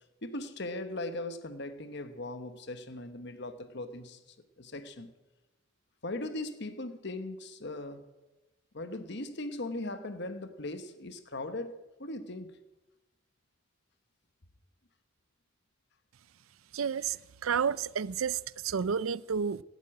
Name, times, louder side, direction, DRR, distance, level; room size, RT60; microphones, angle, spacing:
voice 1, 0.2-4.2 4.6-5.1 6.0-8.1 8.7-12.6 18.7-18.8, left 2 dB, 55° left, 1.1 m, -39 dB
voice 2, 16.7-17.2 17.4-19.6, right 6 dB, 85° right, 0.5 m, -30 dB
16.5 x 8.3 x 8.7 m
head